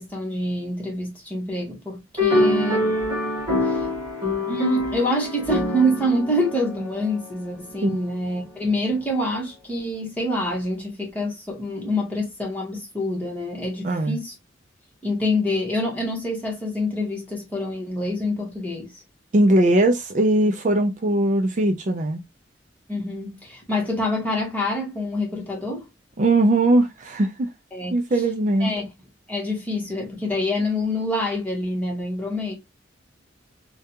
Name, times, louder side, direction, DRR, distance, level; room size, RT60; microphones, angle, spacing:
voice 1, 0.0-3.0 3.6-3.9 4.4-14.3 15.0-19.0 22.9-25.8 27.7-28.0 28.6-28.9 29.3-32.5, left 1 dB, 10° left, 1.2 m, -26 dB
sound 1, 2.2-7.7, left 1 dB, 25° right, 1.5 m, -25 dB
voice 2, 13.8-14.2 19.3-22.2 26.2-27.5 27.9-28.7, right 1 dB, 40° right, 0.4 m, -20 dB
3.4 x 2.3 x 2.8 m
head